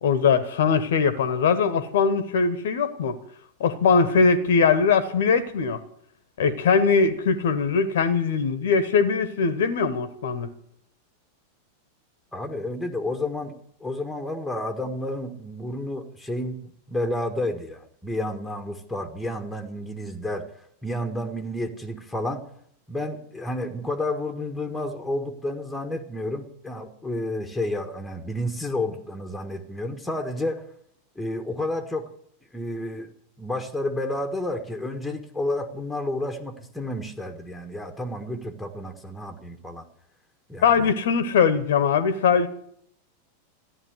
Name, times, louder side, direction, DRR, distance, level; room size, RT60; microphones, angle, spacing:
voice 1, 0.0-3.2 3.6-5.8 6.4-10.5 40.6-42.5, left 5 dB, 60° left, 14 dB, 1.2 m, -21 dB
voice 2, 12.3-13.5 13.8-20.5 20.8-22.5 22.9-30.7 31.1-32.1 32.5-33.1 33.4-39.9 40.5-40.9, left 1 dB, 5° left, 5 dB, 1.6 m, -30 dB
14.5 x 11.0 x 8.0 m, 0.68 s
figure-of-eight pair, 90°, 0 cm